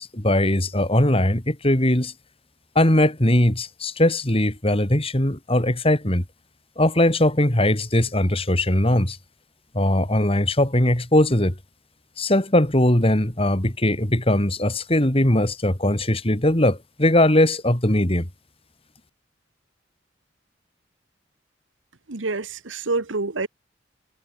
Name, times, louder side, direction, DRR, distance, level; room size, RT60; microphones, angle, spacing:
voice 1, 0.0-2.1 2.7-6.2 6.8-9.2 9.7-11.5 12.2-18.3, left 1 dB, 30° left, 3.1 m, -20 dB
voice 2, 22.1-23.5, right 3 dB, 80° right, 1.4 m, -27 dB
head